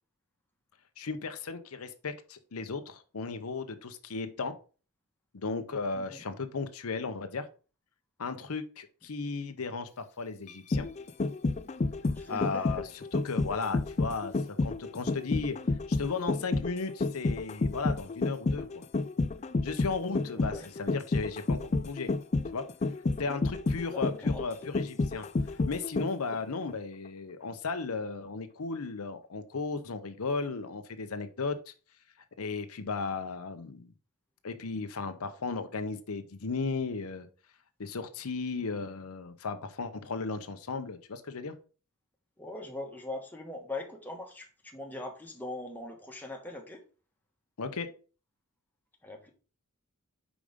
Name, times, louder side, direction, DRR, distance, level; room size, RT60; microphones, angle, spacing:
voice 1, 1.0-4.6 5.3-7.5 8.2-10.9 12.3-12.8 13.1-15.6 15.9-18.8 19.6-22.1 22.5-22.7 23.2-31.7 32.4-33.9 34.4-37.3 37.8-41.5 47.6-47.9, left 4 dB, 80° left, 0.7 m, -35 dB
voice 2, 5.9-6.2 12.1-12.9 20.3-20.7 23.9-24.5 42.4-46.8 49.0-49.3, left 2 dB, 10° left, 1.3 m, -41 dB
sound 1, 10.5-26.4 26.7-26.8, left 3 dB, 30° left, 0.4 m, -30 dB
5.1 x 5.0 x 5.1 m
head